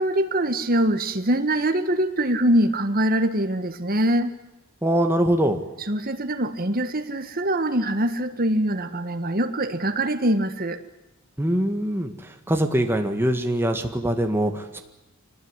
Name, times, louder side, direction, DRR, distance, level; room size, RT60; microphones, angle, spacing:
voice 1, 0.0-4.3 5.8-10.8, right 1 dB, 40° right, 8 dB, 1.7 m, -23 dB
voice 2, 4.8-5.6 11.4-12.1 12.5-14.8, right 1 dB, 10° right, 5 dB, 1.8 m, -23 dB
25.0 x 19.0 x 9.8 m, 0.97 s
head